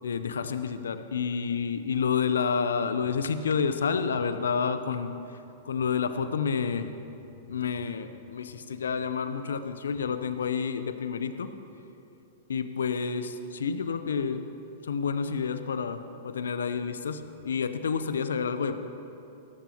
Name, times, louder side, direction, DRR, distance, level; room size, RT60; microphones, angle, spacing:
voice 1, 0.0-5.1 5.6-6.9 7.5-11.5 12.5-14.4 14.9-18.7, left 6 dB, 80° left, 10 dB, 0.7 m, -29 dB
17.5 x 14.0 x 3.0 m, 2.9 s
hypercardioid pair, 105°, 0 cm